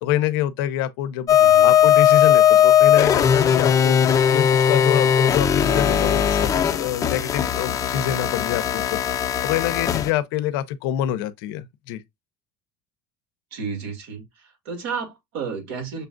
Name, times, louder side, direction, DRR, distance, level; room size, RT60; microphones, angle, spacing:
voice 1, 0.0-1.4 1.6-9.0 9.4-12.0, left 11 dB, 80° left, 0.6 m, -26 dB
sound 1, 1.3-10.1, left 9 dB, 30° left, 0.6 m, -18 dB
voice 2, 1.4-1.8 13.5-16.0, right 5 dB, 80° right, 2.1 m, -32 dB
6.6 x 2.4 x 2.4 m
supercardioid pair, 115°, 12 cm